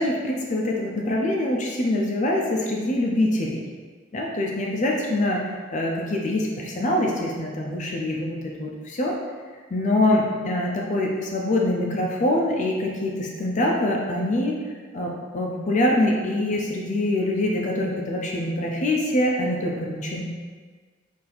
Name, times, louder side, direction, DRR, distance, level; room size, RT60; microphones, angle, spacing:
voice 1, 0.0-3.6 4.1-9.1 9.7-14.6 14.9-20.2, left 1 dB, 40° left, -1 dB, 0.5 m, -24 dB
4.2 x 2.7 x 4.0 m, 1.5 s
head